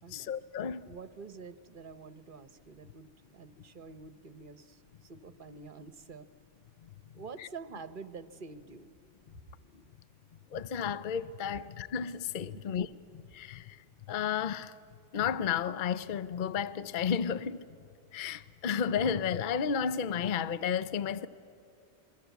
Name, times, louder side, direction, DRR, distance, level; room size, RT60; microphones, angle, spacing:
voice 1, 0.1-0.9 6.8-6.9 7.4-7.5 10.5-12.9 13.1-14.7 15.1-17.7 18.1-21.3, left 7 dB, 50° left, 0.8 m, -32 dB
voice 2, 0.9-6.3 7.1-9.0 12.5-12.6, right 4 dB, 45° right, 1.1 m, -47 dB
28.5 x 22.5 x 8.2 m
omnidirectional pair, 1.3 m